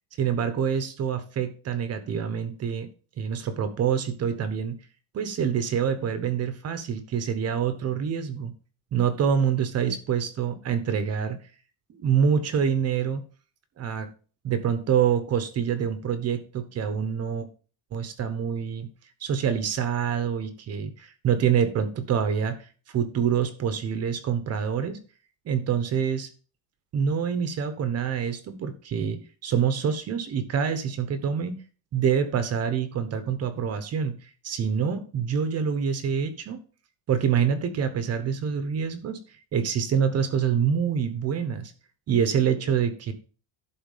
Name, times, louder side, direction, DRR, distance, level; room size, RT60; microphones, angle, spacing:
voice 1, 0.2-2.9 3.2-4.8 5.1-8.5 8.9-11.4 12.0-13.2 13.8-14.1 14.4-17.5 17.9-18.9 19.2-22.6 22.9-25.0 25.4-26.3 26.9-31.6 31.9-34.1 34.4-36.6 37.1-39.2 39.5-41.7 42.1-43.1, right 7 dB, 35° right, 10 dB, 1.2 m, -26 dB
11.5 x 4.2 x 5.6 m, 0.38 s
cardioid pair, 155°, 44 cm